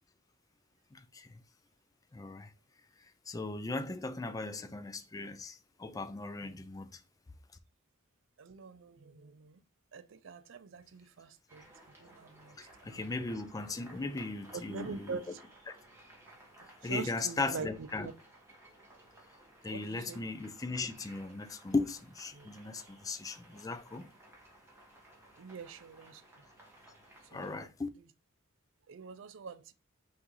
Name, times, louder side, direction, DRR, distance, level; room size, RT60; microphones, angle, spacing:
voice 1, 0.9-1.4 2.1-2.5 3.3-7.0 12.6-15.1 16.8-18.1 19.6-24.1 27.3-27.9, left 3 dB, 15° left, 0.3 m, -37 dB
voice 2, 8.4-9.6 9.9-11.7 12.0-13.4 14.5-15.4 16.8-18.1 19.7-20.2 22.3-22.5 25.4-26.4 27.3-27.7 28.0-28.1 28.9-29.7, right 5 dB, 65° right, 0.5 m, -45 dB
sound 1, 11.5-27.6, right 1 dB, 10° right, 1.2 m, -58 dB
5.9 x 2.5 x 3.0 m
head